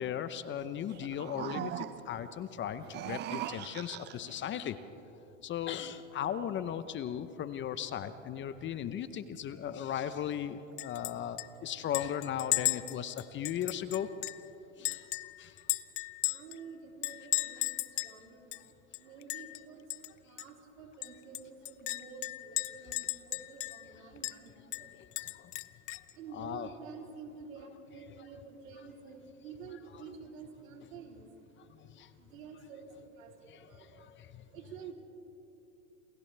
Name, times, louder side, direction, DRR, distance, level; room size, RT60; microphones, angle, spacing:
voice 1, 0.0-4.8 5.4-14.1 14.8-15.1 15.4-15.6 17.6-17.7 25.0-25.1 25.3-25.5 26.3-26.7 29.9-30.0 30.8-30.9 31.8-32.1 33.5-34.5, left 9 dB, 30° left, 12 dB, 0.9 m, -37 dB
sound 1, 0.9-2.2 2.8-4.4, right 13 dB, 25° right, 0.5 m, -40 dB
Chink clink, 10.8-11.1 11.4-11.5 11.9-14.4 14.8-16.6 17.0-18.2 18.5-18.6 18.9-19.6 19.9-20.1 20.4-20.5 21.0-23.9 24.2-24.4 24.7-26.1, left 20 dB, 65° left, 0.7 m, -35 dB
voice 2, 16.2-19.9 20.2-25.1 26.1-31.3 32.2-34.1 34.5-34.9, right 5 dB, 80° right, 1 dB, 3.6 m, -49 dB
28.5 x 27.0 x 3.4 m, 2.9 s
hypercardioid pair, 110°, 40 cm